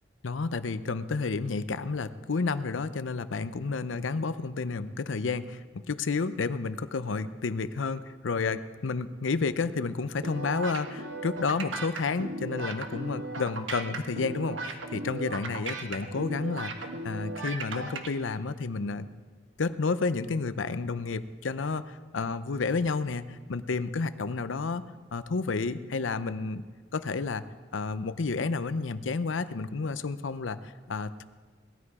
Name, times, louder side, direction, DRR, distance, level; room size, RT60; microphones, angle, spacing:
voice 1, 0.2-16.7 17.0-19.1 19.6-24.8 25.1-26.6 26.9-27.4 27.7-30.6 30.9-31.2, left 4 dB, 80° left, 13 dB, 0.6 m, -31 dB
sound 1, 10.2-18.1, right 2 dB, 75° right, 1.3 m, -36 dB
18.5 x 13.0 x 4.8 m, 1.5 s
head